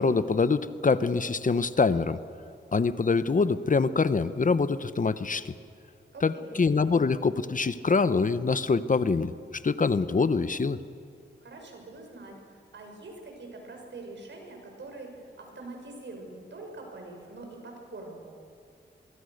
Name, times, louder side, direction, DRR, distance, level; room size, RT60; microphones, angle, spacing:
voice 1, 0.0-2.2 2.7-5.5 6.2-10.8, left 4 dB, 45° left, 13 dB, 1.0 m, -25 dB
voice 2, 6.1-6.7 11.4-18.4, right 2 dB, 70° right, 2 dB, 6.0 m, -44 dB
24.0 x 23.0 x 6.6 m, 2.4 s
cardioid pair, 65°, 19 cm